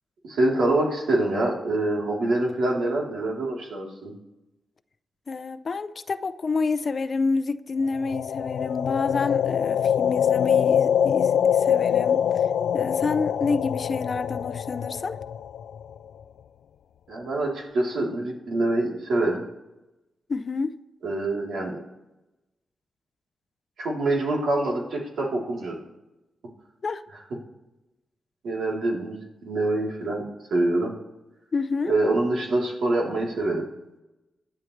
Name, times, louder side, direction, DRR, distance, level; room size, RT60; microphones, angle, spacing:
voice 1, 0.2-4.1 17.1-19.4 21.0-21.8 23.8-25.8 28.4-30.2 30.5-30.9 31.9-33.6, right 2 dB, 70° right, -2 dB, 3.5 m, -25 dB
voice 2, 5.3-12.2 12.7-15.2 20.3-20.8 26.8-27.0 31.5-31.9, left 4 dB, 40° left, 12 dB, 0.6 m, -28 dB
sound 1, 7.9-16.0, left 8 dB, 90° left, 0.4 m, -24 dB
26.0 x 10.5 x 3.3 m, 1.0 s
wide cardioid pair, 135°, 0 cm